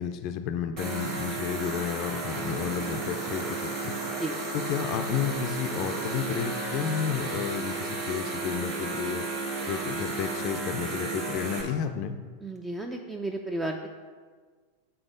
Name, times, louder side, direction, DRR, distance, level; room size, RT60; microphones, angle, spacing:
voice 1, 0.0-4.0 4.5-9.2 9.6-12.2, left 8 dB, 45° left, 8 dB, 0.4 m, -32 dB
sound 1, 0.8-11.6, right 3 dB, 50° right, 1.6 m, -33 dB
voice 2, 12.4-13.9, right 1 dB, 15° right, 3 dB, 0.4 m, -33 dB
7.0 x 3.5 x 5.1 m, 1.5 s
figure-of-eight pair, 90°, 0 cm